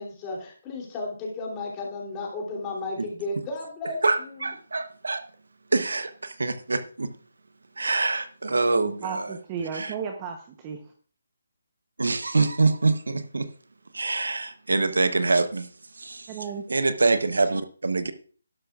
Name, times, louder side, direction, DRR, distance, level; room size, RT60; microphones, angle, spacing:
voice 1, 0.0-4.4, left 2 dB, 20° left, -2 dB, 3.1 m, -34 dB
voice 2, 4.0-5.2 5.7-7.1 7.8-9.4 9.7-9.9 12.0-13.5 13.9-15.7 16.0-16.4 16.7-18.1, right 3 dB, 80° right, 11 dB, 0.9 m, -25 dB
voice 3, 8.5-10.4 10.6-10.8 16.3-16.6, right 6 dB, 20° right, 4 dB, 0.9 m, -34 dB
12.0 x 11.5 x 2.4 m, 0.42 s
figure-of-eight pair, 160°, 0 cm